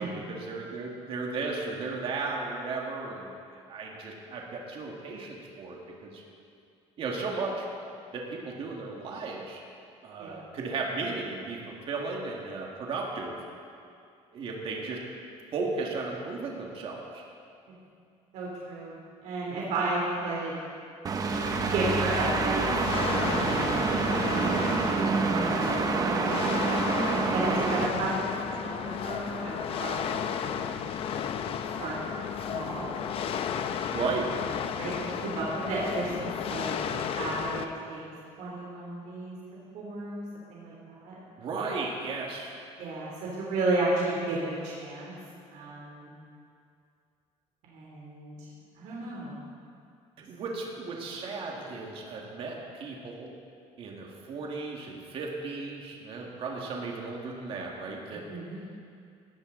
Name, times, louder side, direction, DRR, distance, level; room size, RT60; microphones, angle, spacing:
voice 1, 0.0-3.3 3.7-6.2 7.0-7.7 8.1-9.6 10.0-13.4 14.3-15.0 15.5-17.2 33.9-34.3 41.4-42.6 50.3-53.3 53.8-58.2, right 3 dB, 50° right, -1 dB, 2.1 m, -35 dB
voice 2, 18.3-20.5 21.7-22.7 25.0-26.0 26.8-31.3 31.8-32.0 32.5-32.9 34.8-38.0 38.4-39.3 39.7-40.2 40.5-41.1 42.8-45.1 45.5-46.1 47.6-48.4 48.7-49.4 58.3-58.6, right 2 dB, 80° right, -4 dB, 3.2 m, -33 dB
sound 1, 21.0-27.9, right 4 dB, 30° right, 0.9 m, -27 dB
sound 2, 21.3-37.7, left 8 dB, 50° left, 0.7 m, -33 dB
18.0 x 14.5 x 4.0 m, 2.4 s
cardioid pair, 175°, 13 cm